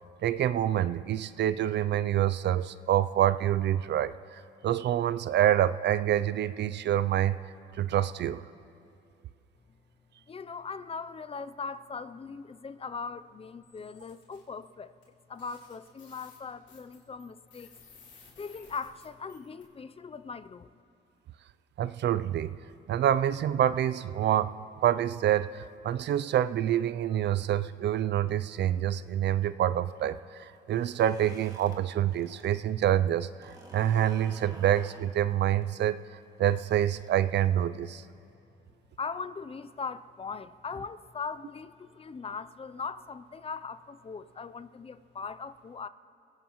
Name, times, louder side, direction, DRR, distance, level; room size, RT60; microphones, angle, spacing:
voice 1, 0.2-7.4 7.8-8.5 21.8-22.6 22.9-24.5 24.8-36.0 36.4-38.0, right 11 dB, 60° right, 0.4 m, -27 dB
voice 2, 10.3-15.0 15.3-17.7 18.4-20.7 39.0-45.9, left 5 dB, 30° left, 0.5 m, -40 dB
sound 1, 13.6-14.4 15.0-15.1 15.4-19.6, left 5 dB, 65° left, 3.3 m, -57 dB
sound 2, 30.6-32.6 32.9-37.6, right 2 dB, 20° right, 2.1 m, -53 dB
28.0 x 16.5 x 3.1 m
cardioid pair, 90°, 20 cm